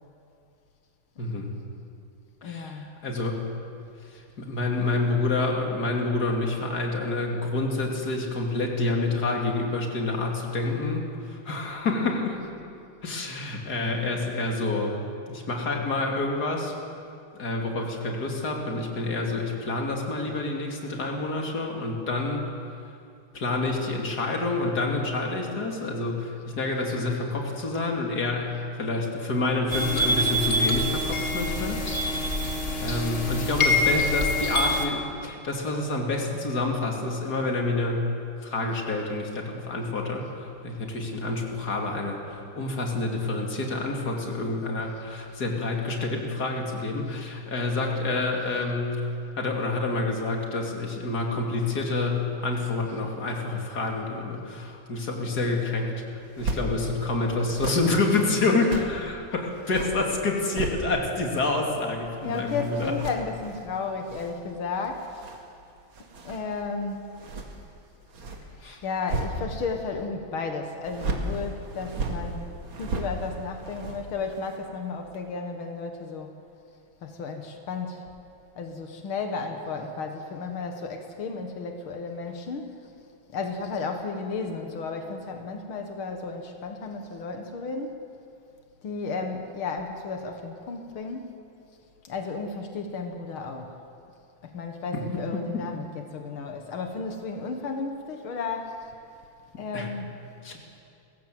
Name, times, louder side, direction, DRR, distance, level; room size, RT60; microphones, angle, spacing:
voice 1, 1.2-1.5 2.4-3.4 4.1-12.4 13.0-15.0 15.3-16.7 17.4-22.4 23.3-31.8 32.2-38.1 38.4-49.1 49.4-62.9 68.6-68.8 94.9-95.1 95.3-95.6 99.7-99.9 100.4-100.6, left 2 dB, 50° left, 1 dB, 3.2 m, -28 dB
voice 2, 2.4-2.9 27.2-27.3 48.5-48.6 52.9-53.0 61.4-61.5 62.2-65.1 66.2-67.1 68.5-72.5 72.8-76.4 77.0-78.1 78.6-82.8 83.3-87.9 88.8-91.4 92.0-93.8 94.4-98.9 99.6-100.1, left 4 dB, 85° left, 4 dB, 2.3 m, -33 dB
sound 1, 29.7-34.9, left 1 dB, 30° left, 2.1 m, -25 dB
sound 2, 56.2-56.7 57.4-59.0 59.5-61.2 61.5-69.9 70.8-74.7 75.0-75.2, right 3 dB, 75° right, 2.8 m, -36 dB
30.0 x 15.5 x 7.7 m, 2.5 s
omnidirectional pair, 2.2 m